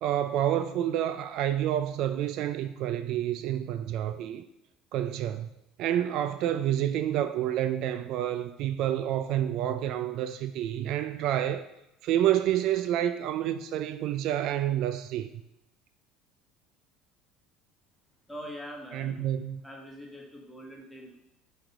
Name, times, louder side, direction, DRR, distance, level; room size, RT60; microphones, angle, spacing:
voice 1, 0.0-4.4 4.9-5.5 5.8-11.6 12.0-15.3 18.9-19.6, right 11 dB, 65° right, 0.3 m, -28 dB
voice 2, 18.3-19.2 19.6-21.2, equal, 5° left, 1.4 m, -43 dB
6.3 x 3.3 x 4.7 m
supercardioid pair, 95°, 0 cm